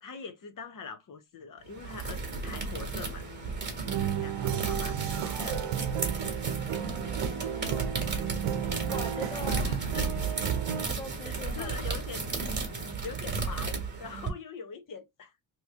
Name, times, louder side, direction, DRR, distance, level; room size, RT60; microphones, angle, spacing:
voice 1, 0.0-3.2 4.0-5.6 9.2-9.4 9.9-10.0 10.3-10.4 11.2-12.3 13.0-15.3, left 6 dB, 40° left, 0.9 m, -43 dB
sound 1, 1.7-14.3, right 4 dB, 20° right, 1.3 m, -34 dB
sound 2, 2.0-13.5, left 5 dB, 75° left, 1.5 m, -50 dB
sound 3, 3.9-10.9, right 9 dB, 75° right, 0.8 m, -33 dB
voice 2, 6.8-8.0 8.8-9.9 10.9-12.0, left 2 dB, 15° left, 0.3 m, -43 dB
3.0 x 2.9 x 3.6 m
cardioid pair, 135°, 50 cm